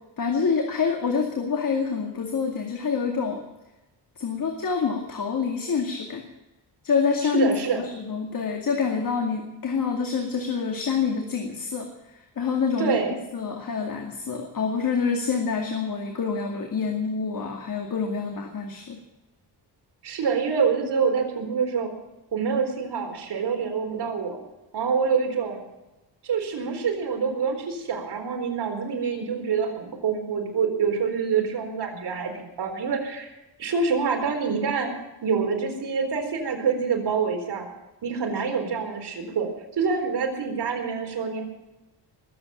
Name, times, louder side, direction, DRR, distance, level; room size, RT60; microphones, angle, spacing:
voice 1, 0.2-3.4 4.2-6.2 6.8-13.0 13.3-19.0, left 5 dB, 50° left, 2 dB, 2.3 m, -27 dB
voice 2, 7.2-7.8 12.8-13.2 20.0-21.9 22.3-24.4 24.7-25.6 26.2-33.3 33.6-34.9 35.2-37.7 38.0-41.4, right 5 dB, 70° right, 2 dB, 4.1 m, -26 dB
20.5 x 8.7 x 7.5 m, 1.0 s
wide cardioid pair, 125°, 42 cm